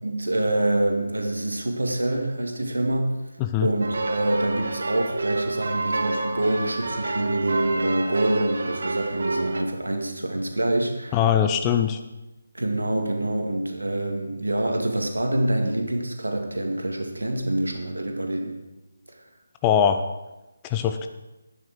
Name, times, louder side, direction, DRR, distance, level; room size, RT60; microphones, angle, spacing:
voice 1, 0.0-3.2 3.6-11.2 12.5-18.6, right 1 dB, 75° right, 3 dB, 2.0 m, -26 dB
sound 1, 3.8-9.6, right 2 dB, 55° right, 1.0 m, -28 dB
voice 2, 11.1-12.0 19.6-20.0 20.6-21.1, left 9 dB, 15° left, 7 dB, 0.5 m, -21 dB
11.5 x 9.5 x 4.6 m, 1.0 s
figure-of-eight pair, 150°, 0 cm